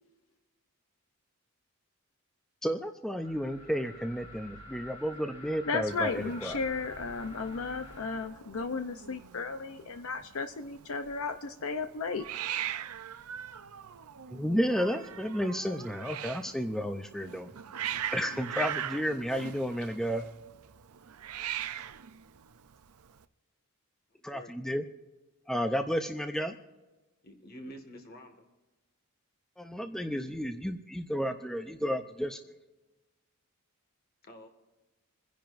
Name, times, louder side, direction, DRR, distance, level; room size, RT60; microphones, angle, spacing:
voice 1, 2.6-6.6 14.3-17.5 18.1-20.3 24.2-24.8 25.5-26.6 29.6-32.4, equal, ahead, 6 dB, 0.5 m, -32 dB
sound 1, 3.2-8.3, left 1 dB, 25° left, 2.4 m, -49 dB
voice 2, 5.7-12.2, left 4 dB, 65° left, 8 dB, 0.6 m, -34 dB
Hiss, 5.9-23.2, right 10 dB, 75° right, 0.6 m, -41 dB
voice 3, 24.1-24.5 27.2-28.5 34.2-34.5, equal, 45° left, 5 dB, 1.8 m, -48 dB
27.5 x 10.5 x 2.6 m, 1.1 s
head